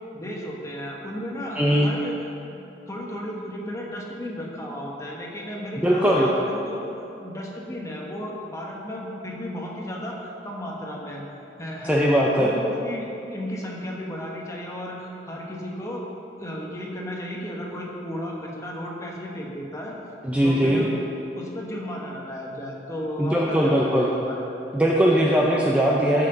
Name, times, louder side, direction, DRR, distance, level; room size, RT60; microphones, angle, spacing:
voice 1, 0.1-2.2 2.5-2.6 2.9-6.8 7.2-11.2 11.6-12.0 12.4-16.1 16.4-19.9 20.4-20.9 21.3-24.4, equal, 20° left, -2 dB, 1.3 m, -34 dB
voice 2, 1.6-1.9 5.8-6.3 11.8-12.5 20.2-20.8 23.2-24.1 24.7-26.3, equal, 10° right, -4 dB, 0.6 m, -20 dB
13.5 x 5.9 x 3.9 m, 2.9 s
head